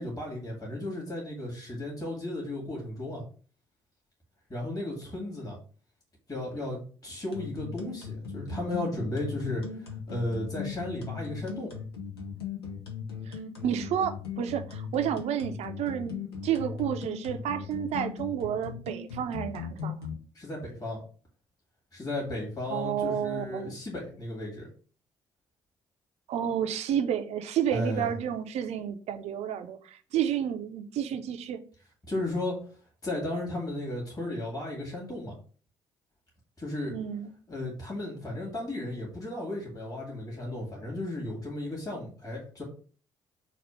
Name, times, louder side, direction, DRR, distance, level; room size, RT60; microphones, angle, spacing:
voice 1, 0.0-3.2 4.5-5.6 6.3-11.7 20.4-21.0 21.9-24.7 27.7-28.1 32.1-32.6 33.0-35.3 36.6-37.0 37.5-42.6, left 1 dB, 30° left, 2.3 m, -34 dB
sound 1, 7.3-20.1, left 7 dB, 90° left, 0.6 m, -38 dB
voice 2, 13.3-16.2 16.4-20.1 22.7-23.7 26.3-31.6 36.9-37.3, right 9 dB, 60° right, 0.6 m, -31 dB
4.1 x 2.4 x 4.6 m
hypercardioid pair, 45°, 13 cm